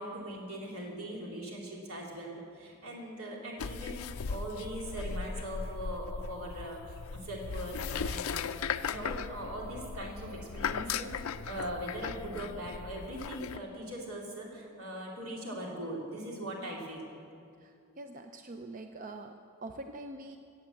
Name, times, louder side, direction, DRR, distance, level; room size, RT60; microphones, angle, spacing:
voice 1, 0.0-6.8 7.1-17.0, right 1 dB, 75° right, -2 dB, 3.1 m, -40 dB
sound 1, 3.6-13.6, left 6 dB, 75° left, 0.5 m, -37 dB
voice 2, 17.6-20.4, right 2 dB, 35° right, 6 dB, 0.5 m, -44 dB
17.5 x 8.4 x 7.6 m, 2.4 s
head